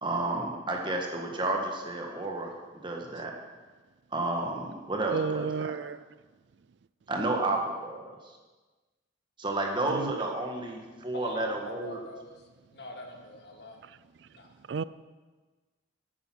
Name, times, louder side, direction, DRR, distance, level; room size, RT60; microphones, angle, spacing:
voice 1, 0.0-2.5 2.8-3.3 4.1-5.7 7.1-8.4 9.4-12.0, right 2 dB, 25° right, 1 dB, 1.5 m, -31 dB
voice 2, 5.1-6.0 9.9-10.2 14.7-14.8, right 5 dB, 70° right, 17 dB, 0.4 m, -31 dB
voice 3, 11.1-12.4 12.7-13.8 14.3-14.6, left 2 dB, 55° left, 1 dB, 1.8 m, -43 dB
10.0 x 9.2 x 6.2 m, 1.3 s
head